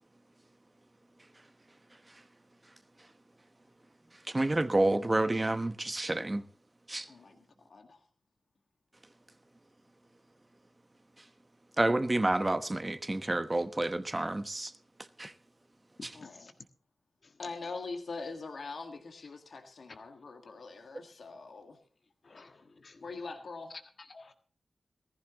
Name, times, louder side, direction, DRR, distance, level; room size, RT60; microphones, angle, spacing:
voice 1, 4.2-6.4 6.9-7.1 11.8-14.7 15.2-15.3 16.0-16.1, right 2 dB, 25° right, 1.0 m, -29 dB
voice 2, 7.1-8.0 16.1-16.5 17.4-21.8 23.0-23.7, left 4 dB, 75° left, 1.8 m, -43 dB
voice 3, 16.0-16.5 17.2-17.3 22.2-23.1 24.0-24.3, left 3 dB, 60° left, 1.6 m, -53 dB
19.5 x 14.5 x 3.0 m
wide cardioid pair, 70°, 0 cm